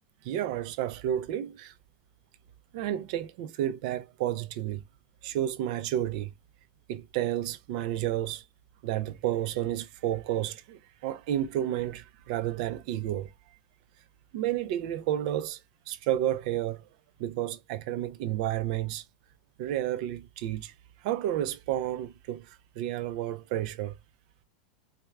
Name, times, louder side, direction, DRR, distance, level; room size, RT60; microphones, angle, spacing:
voice 1, 0.2-1.7 2.7-4.8 5.2-6.3 6.9-8.4 8.8-13.3 14.3-15.6 15.9-16.8 17.2-19.0 19.6-20.7 21.0-24.0, right 12 dB, 55° right, 0.6 m, -31 dB
4.4 x 2.2 x 2.3 m
supercardioid pair, 135°, 5 cm